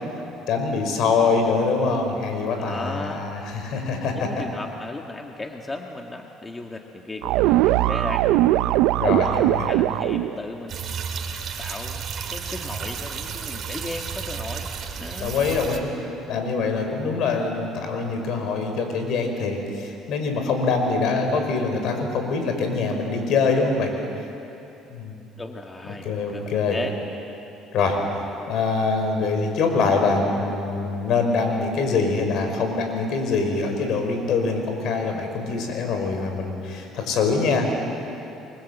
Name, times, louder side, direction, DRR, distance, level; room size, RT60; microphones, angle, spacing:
voice 1, 0.5-4.3 9.0-9.7 15.2-16.0 16.3-23.9 24.9-25.2 26.0-26.8 27.7-28.0 28.5-37.8, left 4 dB, 65° left, 4 dB, 5.6 m, -24 dB
voice 2, 2.6-3.2 4.0-8.3 9.0-11.0 11.3-14.7 15.0-15.4 25.4-26.9, left 2 dB, 15° left, 2 dB, 1.8 m, -36 dB
sound 1, 7.2-10.3, right 15 dB, 80° right, 0.6 m, -20 dB
sound 2, 10.7-15.8, right 6 dB, 45° right, 3.3 m, -32 dB
29.5 x 23.5 x 8.4 m, 2.9 s
cardioid pair, 105°, 0 cm